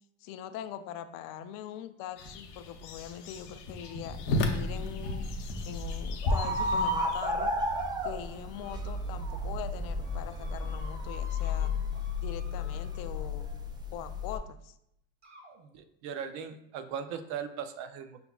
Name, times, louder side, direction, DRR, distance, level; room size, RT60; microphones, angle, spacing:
voice 1, 0.2-4.2 4.5-5.3 5.6-7.5 8.0-11.7 12.2-13.5 13.9-14.7, left 10 dB, 60° left, 10 dB, 0.5 m, -42 dB
sound 1, 2.2-7.2, left 2 dB, 80° left, 0.9 m, -34 dB
sound 2, 3.1-3.4 3.8-4.1 4.4-4.6 5.0-6.9 7.4-8.0 8.6-9.6 9.8-13.4 14.4-14.5 15.2-15.6, equal, 30° right, 1.1 m, -53 dB
sound 3, 4.1-14.4, left 2 dB, 10° right, 0.4 m, -33 dB
voice 2, 15.6-18.2, right 7 dB, 70° right, 9 dB, 0.6 m, -39 dB
5.5 x 4.0 x 2.3 m, 0.77 s
supercardioid pair, 110°, 36 cm